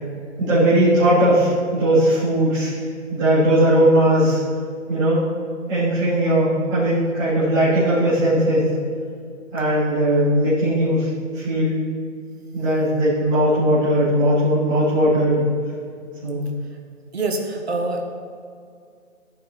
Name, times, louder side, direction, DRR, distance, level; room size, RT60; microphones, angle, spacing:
voice 1, 0.4-2.7 3.1-4.4 4.9-5.2 5.7-8.7 9.5-11.1 11.3-11.8 12.5-15.4 16.2-16.4, right 1 dB, 15° right, -16 dB, 3.4 m, -18 dB
voice 2, 17.1-18.0, right 2 dB, 55° right, 3 dB, 1.6 m, -25 dB
16.5 x 5.7 x 6.0 m, 2.2 s
hypercardioid pair, 175°, 38 cm